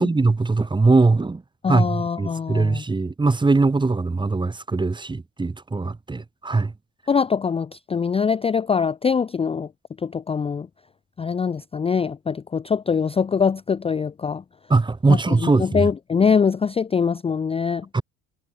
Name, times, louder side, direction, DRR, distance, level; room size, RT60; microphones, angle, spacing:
voice 1, 0.0-1.4 1.7-6.7 14.7-15.9 17.9-18.0, right 3 dB, 15° right, 0.8 m, -21 dB
voice 2, 1.6-2.8 7.1-9.7 10.0-10.7 11.2-14.4 15.1-17.9, left 6 dB, 20° left, 0.4 m, -23 dB
cardioid pair, 90°, 30 cm